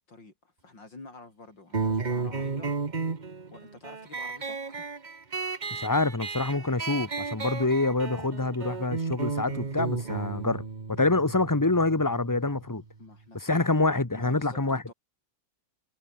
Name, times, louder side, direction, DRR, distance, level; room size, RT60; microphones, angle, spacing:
voice 1, 0.1-2.7 3.5-4.8 13.0-13.5 14.1-14.6 14.9-15.0, left 3 dB, 80° left, 6.2 m, -48 dB
sound 1, 1.7-12.8, right 4 dB, 25° right, 1.3 m, -34 dB
voice 2, 5.7-12.8 13.3-14.8, left 2 dB, 10° left, 1.3 m, -26 dB
omnidirectional pair, 2.0 m